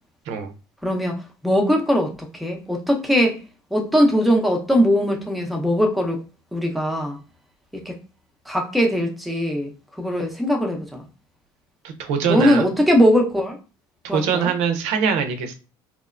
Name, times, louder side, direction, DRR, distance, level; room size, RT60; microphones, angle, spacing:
voice 1, 0.8-1.2 1.4-3.4 3.7-6.2 6.5-7.2 7.7-7.9 8.5-9.7 10.0-11.0 12.3-13.6 14.1-14.5, equal, ahead, 0.7 m, -20 dB
voice 2, 12.0-12.6 14.0-15.5, right 6 dB, 70° right, 0.6 m, -22 dB
3.0 x 2.1 x 2.4 m
supercardioid pair, 85°, 11 cm